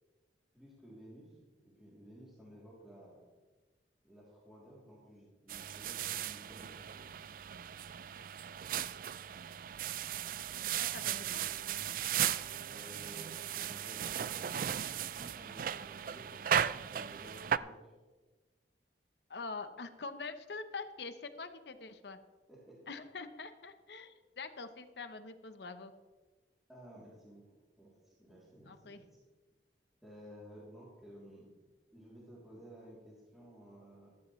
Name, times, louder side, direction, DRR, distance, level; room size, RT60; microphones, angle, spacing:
voice 1, 0.5-3.2 4.0-7.1 12.7-17.9 22.5-22.9 26.7-27.4 27.8-29.0 30.0-31.5 31.9-34.1, equal, ahead, -8 dB, 3.0 m, -54 dB
sound 1, 5.5-17.6, right 9 dB, 50° right, 0.3 m, -36 dB
voice 2, 10.8-11.5 19.3-22.2 22.9-25.9 28.6-29.0, left 4 dB, 70° left, 9 dB, 0.9 m, -45 dB
15.0 x 13.0 x 3.2 m, 1.2 s
head